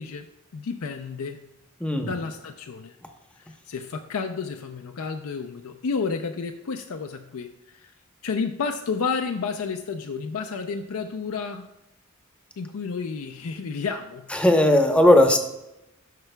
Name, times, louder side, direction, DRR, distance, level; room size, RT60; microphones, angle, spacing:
voice 1, 0.0-1.5 2.0-3.0 3.4-7.9 8.2-11.7 12.6-14.4, left 5 dB, 80° left, 5 dB, 0.4 m, -31 dB
voice 2, 1.8-2.1 14.3-15.4, left 1 dB, 5° left, 4 dB, 0.7 m, -17 dB
12.0 x 5.8 x 2.2 m, 0.90 s
head